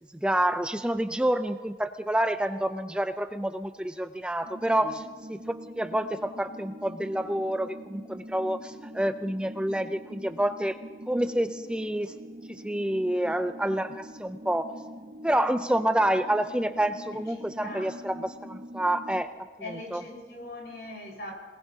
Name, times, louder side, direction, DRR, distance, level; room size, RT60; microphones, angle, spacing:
voice 1, 0.2-5.0 5.3-10.8 11.1-12.1 12.5-14.7 15.2-19.3 19.9-20.0, right 1 dB, 5° right, 10 dB, 0.4 m, -28 dB
sound 1, 4.4-19.2, equal, 45° right, 1.1 m, -44 dB
voice 2, 17.3-17.9 19.6-21.3, left 1 dB, 85° left, -1 dB, 4.7 m, -41 dB
26.5 x 19.5 x 2.8 m, 1.4 s
head